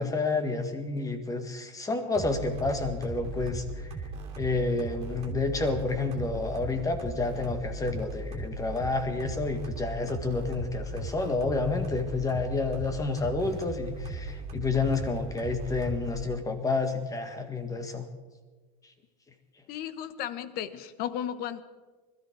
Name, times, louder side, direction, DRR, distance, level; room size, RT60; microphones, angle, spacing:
voice 1, 0.0-3.6 4.4-18.1, left 3 dB, 15° left, 7 dB, 1.7 m, -29 dB
sound 1, 2.1-16.3, right 2 dB, 30° right, 3.0 m, -38 dB
voice 2, 19.7-21.6, left 10 dB, 50° left, 14 dB, 1.0 m, -34 dB
21.0 x 13.5 x 4.6 m, 1.3 s
supercardioid pair, 120°, 21 cm